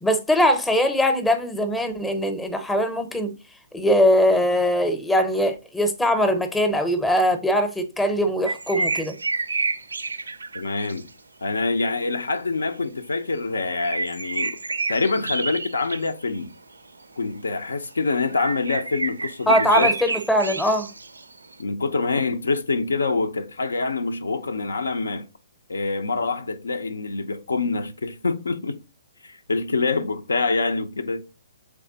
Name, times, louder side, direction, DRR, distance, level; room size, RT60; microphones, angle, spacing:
voice 1, 0.0-3.3 3.7-9.1 19.5-20.9, equal, 5° left, 0.6 m, -21 dB
sound 1, 8.5-11.1 13.6-16.4 17.2-17.5 18.3-21.6, right 3 dB, 85° right, 0.4 m, -29 dB
voice 2, 10.5-11.1 11.4-14.6 14.9-16.5 17.2-19.9 21.6-25.3 25.7-28.8 29.2-31.2, left 3 dB, 80° left, 0.5 m, -25 dB
3.5 x 3.2 x 3.8 m
figure-of-eight pair, 130°, 0 cm